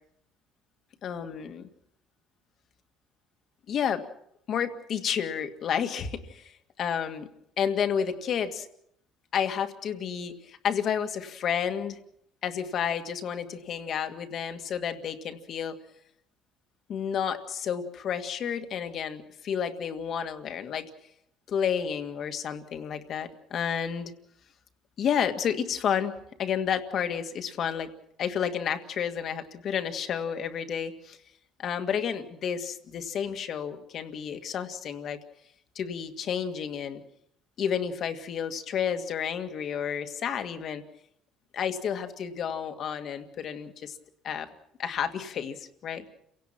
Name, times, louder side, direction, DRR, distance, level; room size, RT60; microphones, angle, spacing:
voice 1, 1.0-1.7 3.7-4.0 4.5-7.3 7.6-8.7 9.3-12.0 12.4-15.8 16.9-20.9 21.5-24.1 25.0-26.1 26.4-27.9 28.2-31.2 31.6-35.2 35.8-37.0 37.6-40.8 41.5-44.0 44.2-44.5 44.8-46.0, left 8 dB, 45° left, 7 dB, 2.0 m, -31 dB
30.0 x 17.5 x 6.0 m, 0.72 s
cardioid pair, 145°, 0 cm